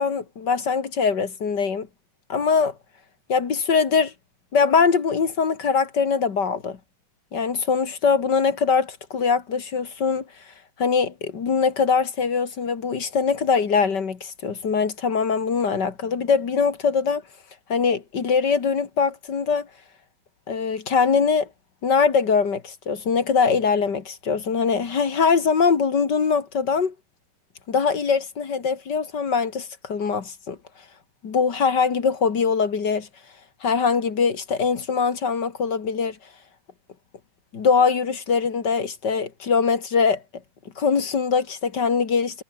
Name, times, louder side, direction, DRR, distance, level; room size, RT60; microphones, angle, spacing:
voice 1, 0.0-1.9 2.3-2.7 3.3-4.1 4.5-6.8 7.3-10.2 10.8-17.2 17.7-19.7 20.5-21.5 21.8-26.9 27.7-30.6 31.2-33.1 33.6-36.2 37.5-40.2 40.8-42.4, left 5 dB, 40° left, 2.0 m, -22 dB
omnidirectional pair, 3.8 m